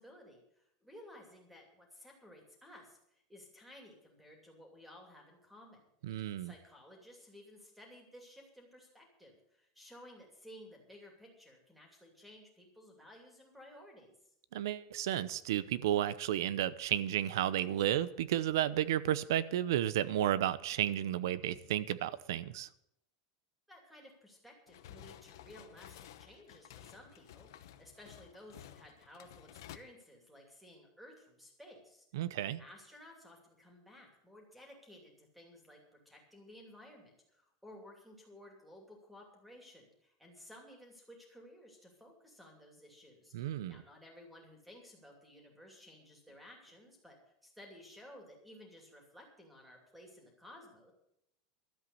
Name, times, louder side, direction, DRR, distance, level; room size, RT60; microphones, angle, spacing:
voice 1, 0.0-5.8 6.4-14.1 23.7-32.1 32.6-47.2 47.4-50.9, left 1 dB, ahead, 2.6 m, -56 dB
voice 2, 6.0-6.5 14.5-22.7 32.1-32.6 43.3-43.8, right 11 dB, 75° right, 0.8 m, -32 dB
sound 1, 24.7-29.8, left 11 dB, 70° left, 1.0 m, -54 dB
12.5 x 8.0 x 8.4 m
supercardioid pair, 180°, 2 cm